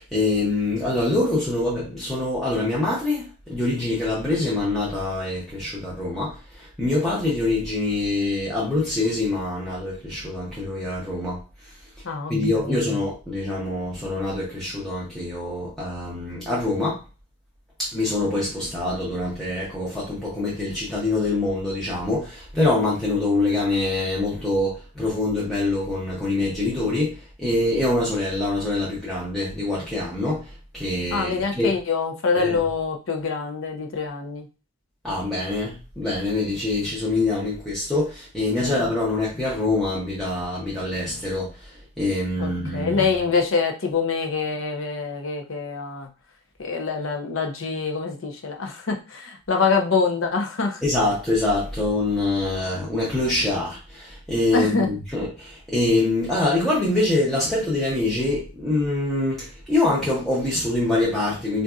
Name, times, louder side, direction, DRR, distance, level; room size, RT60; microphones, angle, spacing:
voice 1, 0.0-11.7 12.3-17.0 17.8-31.7 32.3-32.6 35.0-43.1 50.8-61.6, left 2 dB, ahead, 0.7 m, -25 dB
voice 2, 12.0-12.9 31.1-34.5 38.6-38.7 42.4-46.1 46.6-50.8 54.5-54.9, left 4 dB, 65° left, 0.6 m, -25 dB
3.9 x 2.4 x 2.3 m
head